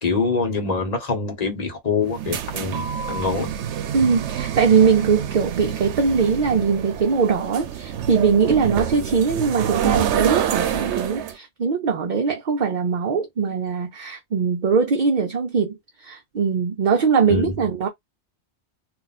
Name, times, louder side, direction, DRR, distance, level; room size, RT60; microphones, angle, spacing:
voice 1, 0.0-3.5 17.3-17.6, left 4 dB, 40° left, 1.1 m, -25 dB
sound 1, 2.0-11.3, right 9 dB, 85° right, 0.9 m, -27 dB
voice 2, 3.9-17.9, right 6 dB, 50° right, 0.6 m, -21 dB
2.5 x 2.3 x 4.0 m
omnidirectional pair, 1.1 m